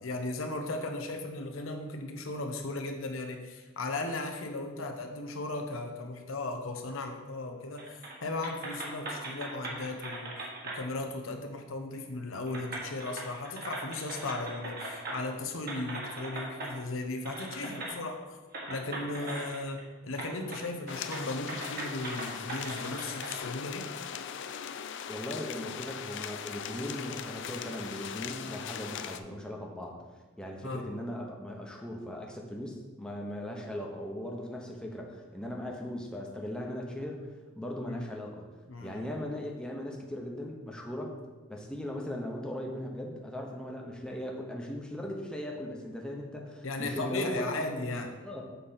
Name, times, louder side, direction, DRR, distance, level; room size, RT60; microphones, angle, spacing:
voice 1, 0.0-10.4 10.6-18.2 18.7-23.9 30.6-30.9 33.0-33.1 37.9-38.1 38.7-39.0 46.6-48.2, left 2 dB, 80° left, 5 dB, 0.8 m, -36 dB
sound 1, 7.8-8.2 8.4-10.8 11.9-12.0 12.5-15.3 15.7-16.7 17.2-17.9 18.5-19.8 20.1-20.6 20.9-23.4, right 2 dB, 50° right, 1.5 m, -40 dB
sound 2, 20.9-29.2, left 8 dB, 65° left, 0.4 m, -39 dB
voice 2, 25.1-30.0 30.4-37.3 37.6-38.5 38.8-41.1 41.5-48.5, left 1 dB, 5° left, 0 dB, 0.8 m, -38 dB
6.9 x 4.1 x 5.7 m, 1.3 s
head